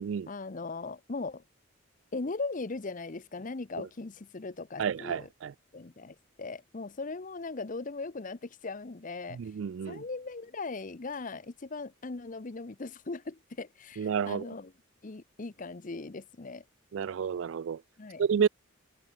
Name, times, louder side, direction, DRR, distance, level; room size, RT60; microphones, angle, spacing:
voice 1, 0.3-1.4 2.1-5.3 5.7-9.5 9.9-14.7 15.0-16.6 18.0-18.5, left 3 dB, 40° left, 0.7 m, -39 dB
voice 2, 4.8-5.5 9.3-10.0 14.0-14.5 16.9-17.8 18.2-18.5, right 7 dB, 65° right, 0.4 m, -30 dB
head